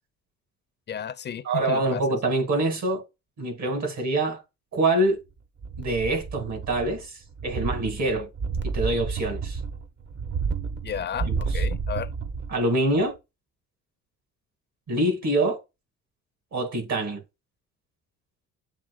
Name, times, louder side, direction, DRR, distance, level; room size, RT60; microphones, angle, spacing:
voice 1, 0.9-2.0 10.8-12.1, left 8 dB, 35° left, 0.5 m, -33 dB
voice 2, 1.4-3.0 3.4-4.4 4.7-5.2 5.8-8.3 8.7-9.6 11.2-11.6 12.5-13.1 14.9-15.6 16.5-17.2, right 2 dB, 65° right, 2.5 m, -25 dB
sound 1, 5.6-7.0 7.3-12.6 13.0-13.1, right 5 dB, 40° right, 0.8 m, -31 dB
7.4 x 2.8 x 2.4 m
cardioid pair, 90°, 30 cm